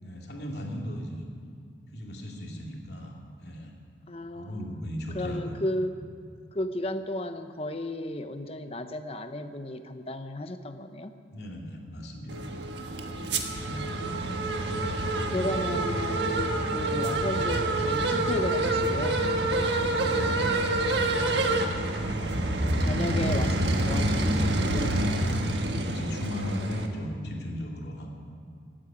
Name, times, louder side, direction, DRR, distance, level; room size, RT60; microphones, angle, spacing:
voice 1, 0.0-1.3 1.9-3.7 4.3-5.6 11.3-12.5 13.1-13.3 19.8-21.1 25.4-28.2, equal, 70° left, 0 dB, 2.5 m, -37 dB
voice 2, 4.1-4.7 5.1-6.0 6.5-11.1 13.7-14.6 15.3-19.3 22.1-25.0, left 1 dB, 35° left, 8 dB, 0.8 m, -34 dB
sound 1, 12.3-26.9, right 1 dB, 80° right, 1.5 m, -27 dB
16.0 x 8.9 x 9.7 m, 2.4 s
head